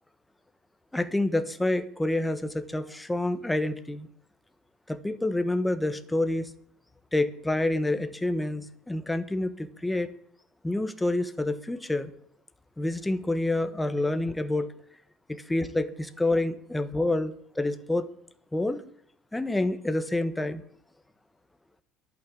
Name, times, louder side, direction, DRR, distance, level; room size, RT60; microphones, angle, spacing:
voice 1, 0.9-4.1 4.9-6.5 7.1-10.1 10.6-12.1 12.8-14.7 15.5-18.1 18.5-18.8 19.3-20.6, left 2 dB, 10° left, 11 dB, 1.1 m, -28 dB
11.0 x 9.0 x 8.4 m, 0.64 s
cardioid pair, 125°, 0 cm